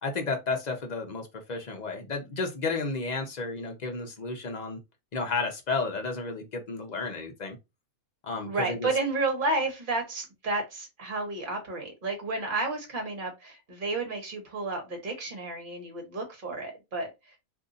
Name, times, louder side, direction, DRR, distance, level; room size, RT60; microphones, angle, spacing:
voice 1, 0.0-4.8 5.1-7.6 8.2-8.9, left 3 dB, 40° left, 0.6 m, -32 dB
voice 2, 8.4-17.4, right 2 dB, 40° right, 1.3 m, -31 dB
2.7 x 2.6 x 3.7 m
omnidirectional pair, 1.5 m